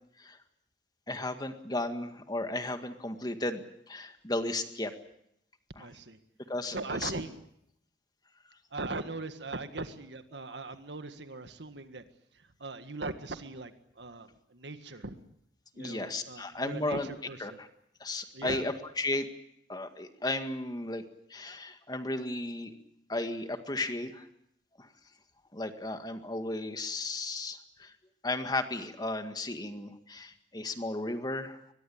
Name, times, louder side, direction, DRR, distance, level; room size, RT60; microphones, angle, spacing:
voice 1, 1.1-4.9 5.8-5.9 6.5-7.1 15.8-17.1 17.4-17.7 18.0-19.3 19.7-21.0 21.3-22.7 23.1-24.3 24.8-24.9 25.5-27.9 28.2-31.6, left 2 dB, 25° left, 8 dB, 1.9 m, -34 dB
voice 2, 5.8-6.2 6.7-7.4 8.7-12.0 12.3-15.2 15.7-17.6 18.3-18.7, right 2 dB, 80° right, 10 dB, 1.8 m, -40 dB
23.5 x 21.0 x 8.7 m, 0.76 s
head